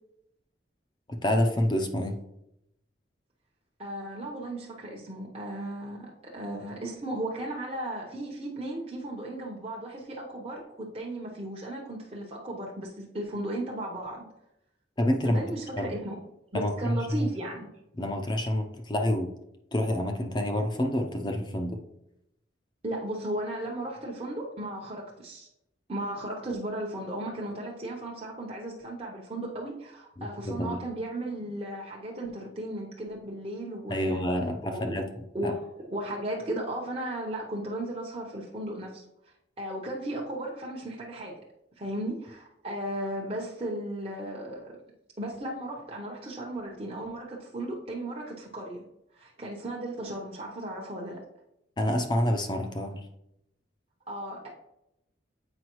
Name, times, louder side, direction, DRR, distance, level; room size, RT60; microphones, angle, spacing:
voice 1, 1.1-2.2 15.0-15.5 15.8-16.0 16.5-17.3 18.0-19.3 19.7-21.8 30.2-30.8 33.9-35.0 35.4-35.5 51.8-53.1, left 1 dB, 25° left, 4 dB, 0.5 m, -28 dB
voice 2, 3.8-14.3 15.2-16.2 16.5-17.7 22.8-25.5 25.9-34.2 34.7-35.0 35.3-39.0 39.6-41.4 41.8-44.8 45.2-48.9 49.1-51.2 54.1-54.5, right 1 dB, 30° right, -3 dB, 0.8 m, -35 dB
7.7 x 5.0 x 3.0 m, 0.82 s
head